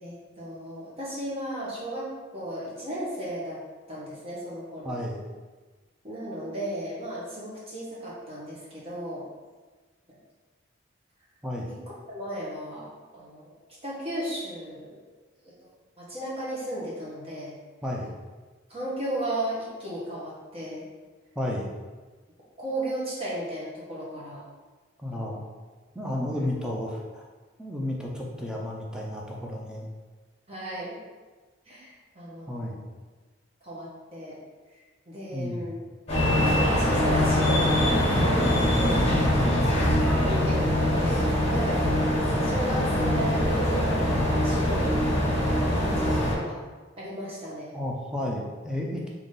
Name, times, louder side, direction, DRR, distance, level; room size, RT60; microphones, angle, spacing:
voice 1, 0.0-3.6 3.9-5.0 6.0-9.2 11.7-13.5 13.8-14.9 16.0-17.6 18.7-20.9 22.6-24.4 25.1-25.3 26.3-26.5 30.5-31.0 31.7-32.8 33.6-34.4 35.1-35.8 36.4-39.1 40.2-42.1 42.4-45.0 45.6-46.6 47.0-47.7, right 1 dB, 30° right, -7 dB, 1.2 m, -35 dB
voice 2, 4.8-5.2 11.4-11.7 17.8-18.1 21.4-21.7 25.0-25.4 25.9-27.3 27.6-29.9 32.5-32.8 35.3-35.7 39.4-39.7 47.7-49.1, left 1 dB, 5° right, -3 dB, 0.5 m, -32 dB
sound 1, 36.1-46.3, left 1 dB, 35° left, 1.4 m, -23 dB
3.9 x 3.0 x 3.8 m, 1.3 s
head